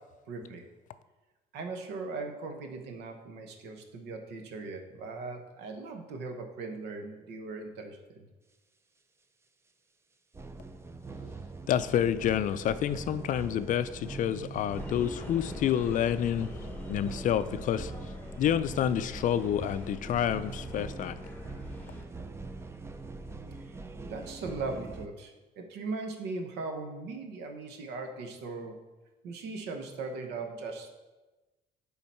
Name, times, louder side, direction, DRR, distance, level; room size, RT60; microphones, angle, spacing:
voice 1, 0.3-0.6 1.5-8.3 23.6-23.7 24.0-28.8 29.2-30.9, right 3 dB, 85° right, 4 dB, 1.1 m, -39 dB
sound 1, 10.3-25.1, right 3 dB, 15° right, 0.4 m, -43 dB
voice 2, 11.7-16.5 16.9-17.9 18.4-21.1, left 10 dB, 50° left, 13 dB, 0.4 m, -28 dB
sound 2, 14.7-22.0, left 3 dB, 10° left, 0.9 m, -44 dB
10.0 x 3.9 x 4.3 m, 1.1 s
cardioid pair, 110°, 17 cm